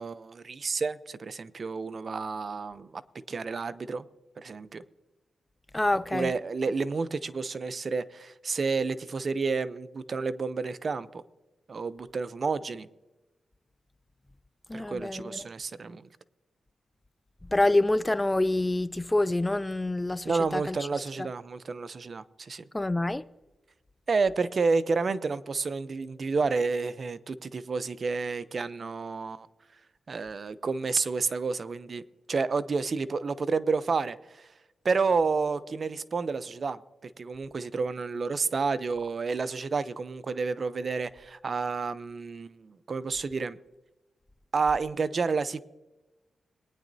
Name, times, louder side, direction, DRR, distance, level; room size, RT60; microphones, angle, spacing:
voice 1, 0.0-3.0 3.3-4.1 4.4-4.8 6.1-11.2 11.7-12.9 14.7-16.1 20.2-22.6 24.1-29.5 30.1-32.0 32.3-34.5 34.8-43.6 44.5-45.6, right 4 dB, 50° right, 0.5 m, -30 dB
voice 2, 5.7-6.3 14.7-15.5 17.5-20.8 21.2-21.3 22.7-23.2, left 2 dB, 15° left, 0.4 m, -26 dB
22.0 x 9.8 x 2.7 m
cardioid pair, 65°, 0 cm